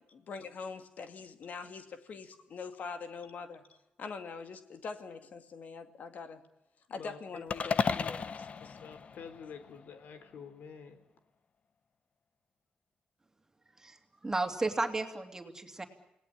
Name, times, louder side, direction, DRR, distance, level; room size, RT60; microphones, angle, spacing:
voice 1, 0.1-3.6 4.0-6.4 6.9-8.8, left 5 dB, 65° left, 8 dB, 2.3 m, -43 dB
voice 2, 6.9-7.4 8.3-8.4 8.7-11.0, left 6 dB, 80° left, 10 dB, 3.4 m, -48 dB
sound 1, 7.5-9.8, left 5 dB, 50° left, 1.0 m, -34 dB
voice 3, 14.2-15.8, right 2 dB, 20° right, 6 dB, 2.9 m, -33 dB
28.5 x 18.5 x 8.6 m, 0.91 s
cardioid pair, 120°, 3 cm